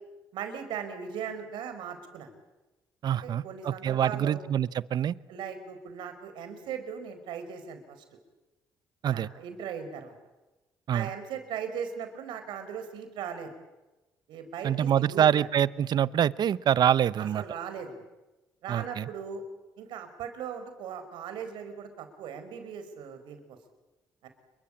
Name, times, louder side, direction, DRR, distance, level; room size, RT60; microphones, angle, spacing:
voice 1, 0.3-2.3 3.2-4.4 5.3-8.0 9.0-10.1 10.9-13.5 14.3-15.5 17.2-18.0 18.6-19.4 19.8-23.6 24.2-24.3, right 7 dB, 80° right, 8 dB, 5.0 m, -38 dB
voice 2, 3.0-5.2 9.0-9.3 10.9-11.1 14.6-17.4 18.7-19.1, right 10 dB, 60° right, 18 dB, 0.9 m, -25 dB
29.0 x 23.5 x 8.6 m, 1.1 s
supercardioid pair, 60°, 8 cm